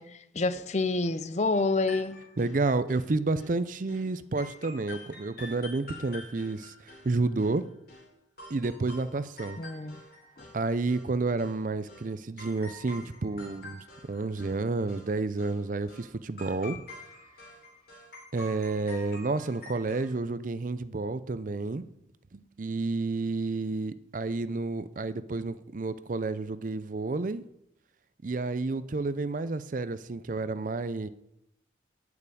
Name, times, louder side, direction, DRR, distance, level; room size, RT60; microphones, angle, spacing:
voice 1, 0.0-2.2 9.6-10.0 10.4-10.5, left 3 dB, 35° left, 0.5 m, -28 dB
sound 1, 1.5-3.1 3.4-3.6 3.9-4.1 4.4-8.1 8.4-10.6 10.9-11.6 11.9-12.1 12.4-14.6 14.9-15.1 15.4-15.6 15.9-16.1 16.4-20.2, left 1 dB, 50° left, 3.6 m, -47 dB
voice 2, 2.4-7.6 8.5-9.6 10.5-16.8 18.3-21.9 22.3-27.4 28.2-31.1, right 3 dB, 45° right, 0.5 m, -30 dB
8.4 x 6.8 x 8.5 m
head